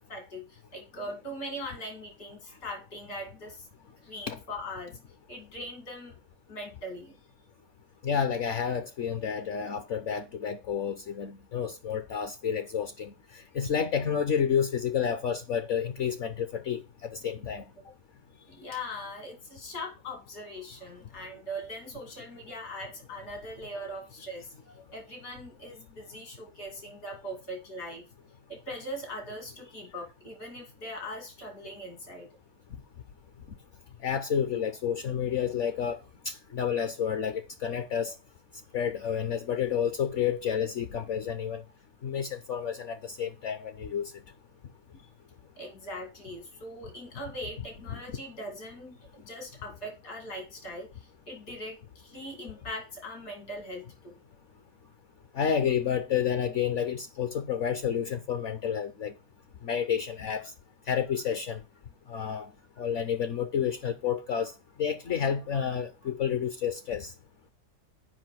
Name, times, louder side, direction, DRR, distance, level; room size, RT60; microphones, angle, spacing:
voice 1, 0.1-3.6 4.0-5.0 5.3-6.1 6.5-7.2 18.5-24.5 24.9-28.0 28.5-32.3 45.6-50.9 51.3-54.2, equal, 75° left, 3.2 m, -40 dB
voice 2, 8.0-17.6 34.0-36.0 36.2-38.1 38.7-41.6 42.0-44.1 47.9-48.0 55.3-59.1 59.6-60.5 60.9-61.6 62.1-62.5 62.8-64.5 64.8-67.1, left 8 dB, 60° left, 0.8 m, -30 dB
7.5 x 5.1 x 5.9 m
omnidirectional pair, 1.7 m